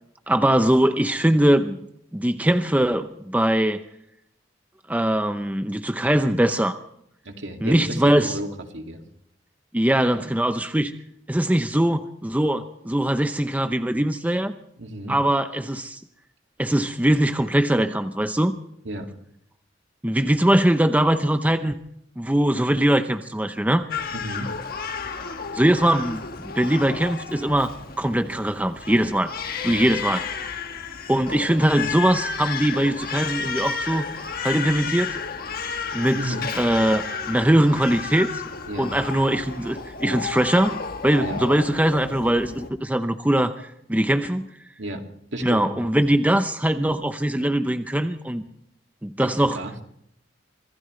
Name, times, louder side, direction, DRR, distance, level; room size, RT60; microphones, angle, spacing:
voice 1, 0.3-1.8 2.1-3.8 4.9-6.8 7.6-8.3 9.7-10.9 11.3-14.5 15.1-16.0 16.6-18.5 20.0-21.8 22.2-23.8 25.5-27.7 28.0-29.3 29.6-30.3 31.1-34.1 34.4-35.2 35.9-38.4 38.8-40.8 41.0-44.5 45.4-48.4 49.0-49.6, right 1 dB, 10° right, 8 dB, 0.7 m, -21 dB
voice 2, 7.3-9.0 14.8-15.2 18.8-19.1 24.1-24.5 29.7-29.8 36.2-36.5 38.7-38.9 41.2-41.4 44.8-45.0 45.3-45.7 49.2-49.7, right 1 dB, 70° right, 3 dB, 2.4 m, -32 dB
Crying sobbing, 23.9-42.7, left 5 dB, 55° left, 1.3 m, -32 dB
25.5 x 17.0 x 3.2 m, 0.71 s
head